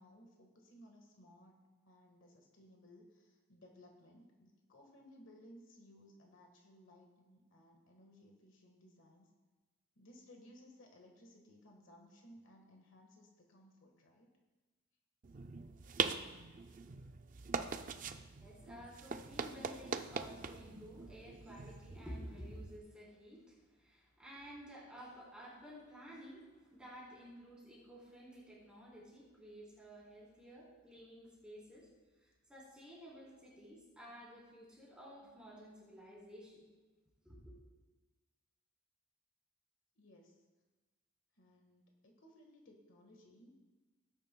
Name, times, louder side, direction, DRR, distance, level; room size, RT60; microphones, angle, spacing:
voice 1, 0.0-9.3 9.9-14.3 39.9-40.4 41.3-43.6, left 1 dB, 60° left, 1 dB, 1.5 m, -61 dB
sound 1, 15.2-22.8, right 5 dB, 35° right, 0.4 m, -42 dB
voice 2, 18.4-31.9 32.2-36.7 37.2-37.5, equal, 5° right, -6 dB, 3.7 m, -53 dB
18.0 x 9.8 x 2.3 m, 1.2 s
head